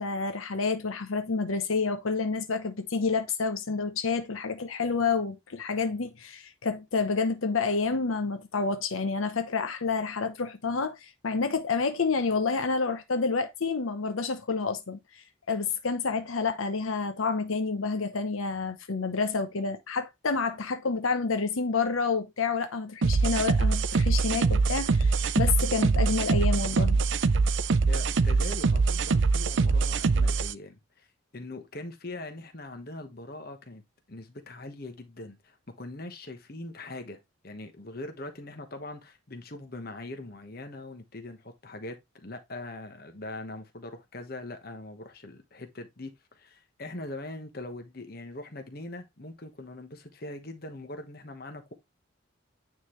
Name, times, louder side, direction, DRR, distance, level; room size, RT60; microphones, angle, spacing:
voice 1, 0.0-27.0, left 4 dB, 80° left, 0.8 m, -29 dB
sound 1, 23.0-30.5, right 4 dB, 60° right, 0.5 m, -24 dB
voice 2, 27.9-31.1 31.3-33.8 34.1-51.7, left 2 dB, 45° left, 1.1 m, -42 dB
9.4 x 3.8 x 3.1 m
head